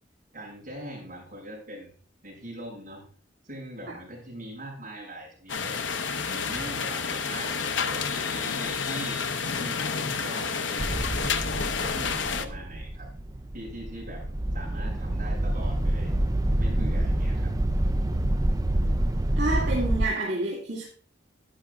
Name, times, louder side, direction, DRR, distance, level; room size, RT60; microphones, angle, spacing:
voice 1, 0.3-1.9 2.2-3.1 3.4-5.8 6.3-9.3 9.5-11.4 11.8-13.1 13.5-14.3 14.5-16.1 16.6-17.6, right 1 dB, 45° right, -3 dB, 5.6 m, -41 dB
sound 1, 5.5-12.5, left 5 dB, 75° left, 0.8 m, -30 dB
sound 2, 10.8-20.1, right 1 dB, 20° right, 0.4 m, -27 dB
voice 2, 19.3-20.8, right 2 dB, 60° right, -6 dB, 2.3 m, -29 dB
11.5 x 9.6 x 2.5 m, 0.42 s
head